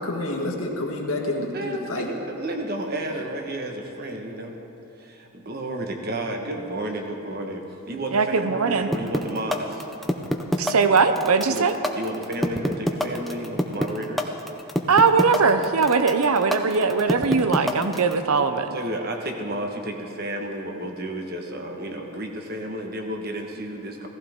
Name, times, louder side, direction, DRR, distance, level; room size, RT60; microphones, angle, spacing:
voice 1, 0.0-2.1, left 1 dB, 75° left, 0 dB, 1.7 m, -28 dB
voice 2, 1.5-4.5 5.0-9.9 11.5-14.4 18.7-24.1, right 1 dB, 45° right, 2 dB, 1.3 m, -32 dB
voice 3, 8.1-8.9 10.6-11.7 14.9-18.7, right 5 dB, 85° right, 9 dB, 0.7 m, -20 dB
sound 1, 8.9-18.1, equal, ahead, 0.6 m, -24 dB
17.0 x 15.0 x 3.7 m, 2.9 s
head